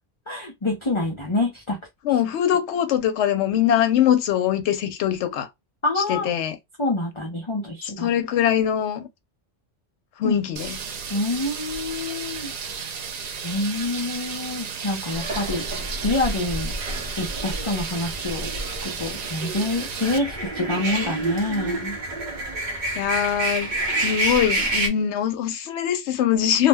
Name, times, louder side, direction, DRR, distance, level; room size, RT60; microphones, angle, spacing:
voice 1, 0.3-1.8 5.8-6.3 6.8-8.2 10.2-10.4 11.1-12.5 13.4-15.6 16.0-16.7 17.2-22.0, left 2 dB, 35° left, 0.5 m, -27 dB
voice 2, 2.0-5.5 6.0-6.6 8.0-9.1 10.2-10.8 22.9-26.7, left 10 dB, 70° left, 0.8 m, -22 dB
sound 1, 10.6-20.2, right 6 dB, 75° right, 0.3 m, -33 dB
sound 2, 15.1-24.9, right 2 dB, 45° right, 0.7 m, -29 dB
2.4 x 2.1 x 3.3 m
omnidirectional pair, 1.3 m